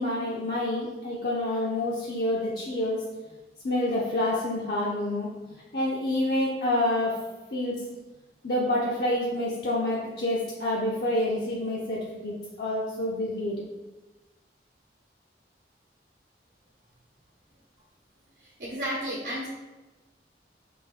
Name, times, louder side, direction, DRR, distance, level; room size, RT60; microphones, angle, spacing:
voice 1, 0.0-3.0 3.6-5.3 5.7-7.2 7.5-7.8 8.4-13.6, left 1 dB, 60° left, -5 dB, 0.6 m, -28 dB
voice 2, 18.4-19.5, equal, 70° right, -6 dB, 0.9 m, -33 dB
3.4 x 3.0 x 3.7 m, 1.1 s
head